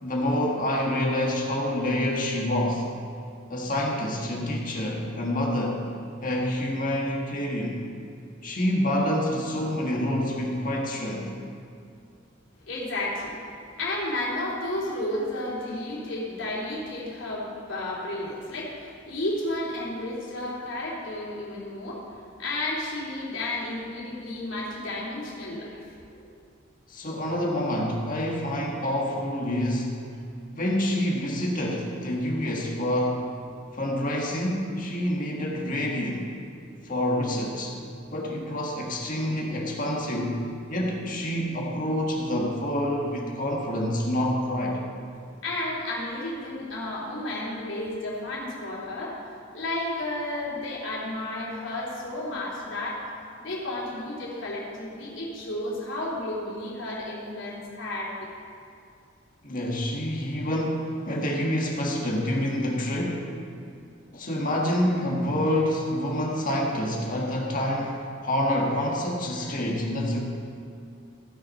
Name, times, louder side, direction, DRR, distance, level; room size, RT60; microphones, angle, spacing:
voice 1, 0.0-2.9 3.5-5.9 6.2-7.9 8.4-11.3 26.9-30.0 30.5-33.2 33.7-36.3 36.8-37.8 38.1-44.8 59.4-63.4 64.1-70.2, left 1 dB, 45° left, -1 dB, 1.8 m, -27 dB
voice 2, 12.7-13.4 13.8-26.3 45.4-49.2 49.5-53.0 53.4-58.3, left 1 dB, 75° left, -5 dB, 3.1 m, -32 dB
15.5 x 6.3 x 5.7 m, 2.4 s
head